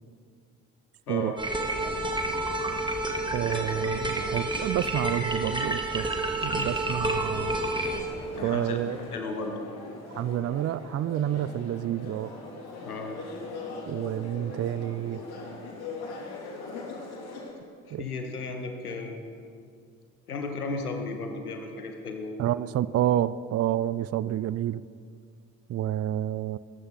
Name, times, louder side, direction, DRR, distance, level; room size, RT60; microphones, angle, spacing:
voice 1, 1.1-1.4 3.4-3.7 8.3-8.8 9.1-9.6 12.8-13.2 17.9-19.2 20.3-22.3, left 3 dB, 90° left, 4 dB, 1.2 m, -35 dB
sound 1, 1.4-8.0, right 1 dB, 10° right, 2.3 m, -29 dB
voice 2, 3.3-6.1 6.4-7.6 8.4-9.0 10.1-12.3 13.9-15.2 17.9-18.0 22.4-24.8 25.7-26.6, right 12 dB, 35° right, 18 dB, 0.5 m, -29 dB
sound 2, 7.8-17.5, left 3 dB, 60° left, 3.4 m, -41 dB
20.5 x 15.0 x 4.1 m, 2.2 s
figure-of-eight pair, 45°, 43 cm